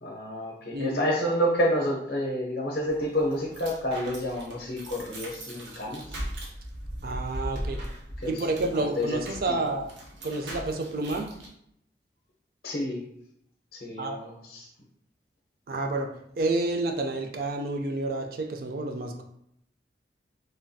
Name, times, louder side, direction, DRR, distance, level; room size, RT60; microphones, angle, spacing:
voice 1, 0.0-6.0 8.2-8.3 8.7-9.2 9.5-9.6 12.6-13.0 13.7-14.7, equal, 55° left, -2 dB, 0.5 m, -29 dB
voice 2, 0.7-1.1 7.0-7.8 8.3-9.9 10.2-11.3 14.0-14.2 15.7-19.2, right 2 dB, 55° right, 4 dB, 0.4 m, -29 dB
sound 1, 2.9-11.5, equal, 90° right, 0.7 m, -39 dB
3.3 x 2.2 x 2.6 m, 0.73 s
head